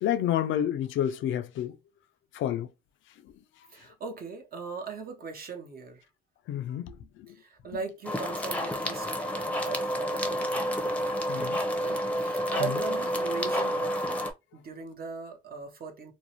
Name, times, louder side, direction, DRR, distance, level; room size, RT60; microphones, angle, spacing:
voice 1, 0.0-1.8 2.3-2.7 6.5-7.3 11.3-11.7 12.6-12.8, left 10 dB, 75° left, 0.4 m, -29 dB
voice 2, 3.7-6.0 7.3-10.7 11.7-14.2 14.5-16.1, right 5 dB, 50° right, 0.8 m, -39 dB
sound 1, 8.1-14.3, equal, 5° left, 0.6 m, -29 dB
2.5 x 2.0 x 2.9 m
cardioid pair, 90°, 20 cm